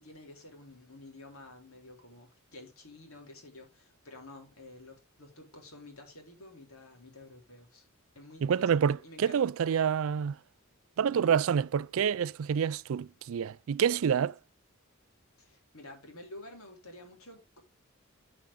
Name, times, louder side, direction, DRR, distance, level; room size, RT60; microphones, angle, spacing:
voice 1, 0.0-7.9 8.2-9.4 15.4-17.6, left 2 dB, 75° left, 3.7 m, -50 dB
voice 2, 8.4-10.4 11.0-14.3, right 7 dB, 70° right, 0.4 m, -27 dB
11.5 x 5.9 x 3.6 m
head